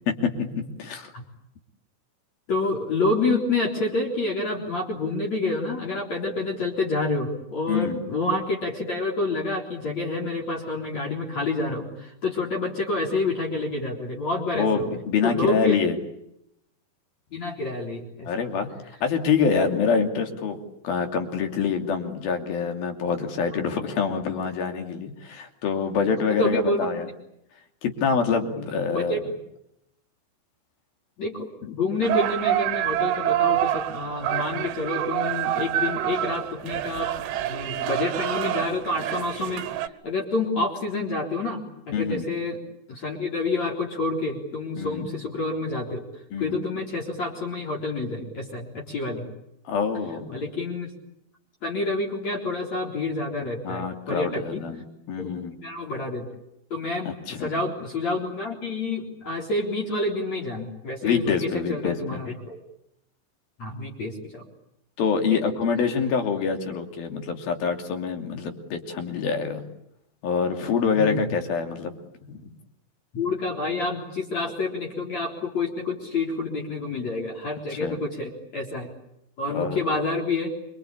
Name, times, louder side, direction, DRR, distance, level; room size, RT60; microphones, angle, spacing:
voice 1, 0.1-1.1 7.7-8.0 14.5-16.0 18.3-18.7 19.0-20.6 20.8-27.1 27.8-29.2 41.9-42.3 44.8-45.1 46.3-46.6 49.7-50.4 53.6-55.6 57.1-57.5 61.0-62.2 65.0-69.6 70.2-71.9 72.3-72.4 77.7-78.0 79.5-79.9, left 5 dB, 55° left, 5 dB, 4.2 m, -26 dB
voice 2, 2.5-14.9 15.2-15.8 17.3-18.3 26.0-26.1 26.4-26.8 28.6-28.7 28.9-29.2 31.2-39.6 40.0-41.6 41.9-42.6 42.9-46.0 46.4-49.2 50.3-50.9 51.6-54.6 55.2-55.3 55.6-56.3 56.7-62.6 63.6-64.4 65.3-65.4 70.9-71.2 73.1-78.9 79.4-80.5, left 2 dB, 35° left, 0 dB, 4.8 m, -28 dB
sound 1, 32.0-39.9, right 12 dB, 70° right, 3.1 m, -27 dB
27.5 x 25.0 x 8.7 m, 0.80 s
omnidirectional pair, 5.6 m